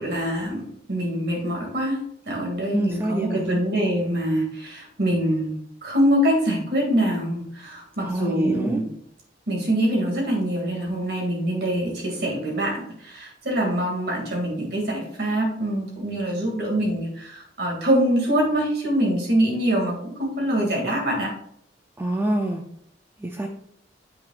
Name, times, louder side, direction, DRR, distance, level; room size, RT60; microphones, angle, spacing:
voice 1, 0.0-8.9 9.5-21.3, right 1 dB, 60° right, -1 dB, 2.4 m, -24 dB
voice 2, 2.7-3.6 8.0-8.8 22.0-22.6 23.2-23.5, right 1 dB, 10° right, 3 dB, 0.4 m, -26 dB
7.8 x 5.7 x 2.5 m, 0.68 s
head